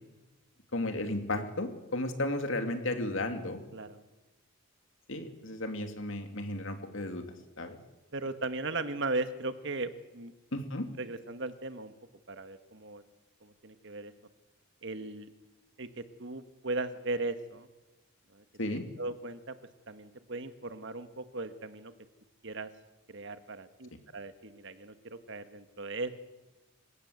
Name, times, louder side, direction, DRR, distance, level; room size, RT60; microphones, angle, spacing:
voice 1, 0.7-3.6 5.1-7.2 7.6-7.8 10.5-10.9 18.6-18.9, left 1 dB, 60° left, 7 dB, 2.7 m, -34 dB
voice 2, 8.1-10.3 11.0-11.9 12.3-13.0 13.4-14.1 14.8-15.3 15.8-17.7 18.3-19.5 19.9-21.9 22.4-22.7 23.1-26.1, right 2 dB, 60° right, 10 dB, 1.6 m, -37 dB
28.5 x 16.5 x 8.1 m, 1.1 s
head